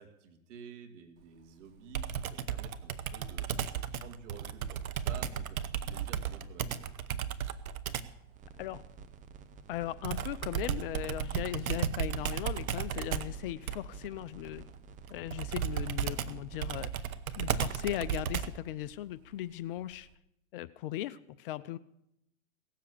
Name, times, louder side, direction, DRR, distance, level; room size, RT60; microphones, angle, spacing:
voice 1, 0.0-6.9, right 6 dB, 55° right, 5 dB, 2.4 m, -51 dB
Computer keyboard, 1.9-8.2 10.0-18.7, right 8 dB, 80° right, 1.0 m, -35 dB
sound 1, 8.3-16.9, right 5 dB, 20° right, 0.7 m, -51 dB
voice 2, 9.7-14.6 15.1-16.9 17.4-20.1 20.5-21.8, left 14 dB, 40° left, 16 dB, 0.5 m, -38 dB
17.0 x 7.5 x 8.3 m, 0.81 s
hypercardioid pair, 125°, 42 cm